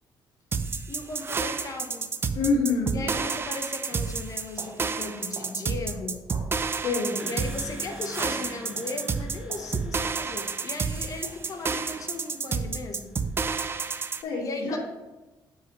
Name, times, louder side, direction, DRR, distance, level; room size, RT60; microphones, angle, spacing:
sound 1, 0.5-14.2, right 5 dB, 30° right, 0.5 m, -30 dB
voice 1, 0.9-2.1 2.9-6.3 7.2-13.2 14.4-14.8, left 3 dB, 45° left, 5 dB, 1.0 m, -37 dB
voice 2, 2.3-3.0 6.7-7.3 14.2-14.8, left 3 dB, 80° left, -4 dB, 1.7 m, -26 dB
sound 2, 2.4-2.6 3.1-3.4 3.9-4.1 4.6-4.8 5.3-5.6 6.3-6.5 7.1-7.3 7.9-8.1 8.7-9.0 9.5-9.7 10.3-10.6 11.2-11.4, right 3 dB, 60° right, 1.4 m, -45 dB
sound 3, 7.2-13.6, equal, 10° right, 1.0 m, -47 dB
8.1 x 7.6 x 3.1 m, 1.1 s
cardioid pair, 110°, 8 cm